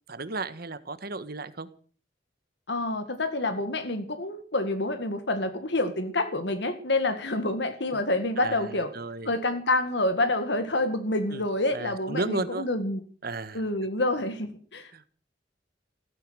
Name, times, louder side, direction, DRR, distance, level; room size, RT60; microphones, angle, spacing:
voice 1, 0.1-1.7 8.4-9.3 11.3-11.4 11.7-12.7 13.2-13.6 14.9-15.0, right 2 dB, 55° right, 13 dB, 1.5 m, -34 dB
voice 2, 2.7-8.9 9.2-13.0 13.5-14.9, left 2 dB, 70° left, 9 dB, 2.0 m, -28 dB
16.0 x 14.0 x 6.4 m, 0.43 s
head